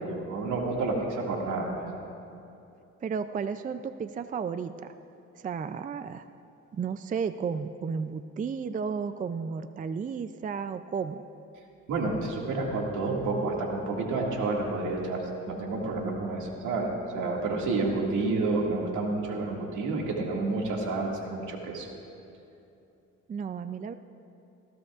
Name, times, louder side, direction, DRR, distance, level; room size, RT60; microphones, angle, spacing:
voice 1, 0.0-1.7 11.9-16.9 17.1-21.9, right 3 dB, 80° right, -1 dB, 2.1 m, -29 dB
voice 2, 3.0-4.9 5.3-6.3 6.7-11.2 23.3-23.9, right 6 dB, 25° right, 11 dB, 0.4 m, -33 dB
19.5 x 15.5 x 2.5 m, 2.8 s
cardioid pair, 90°, 30 cm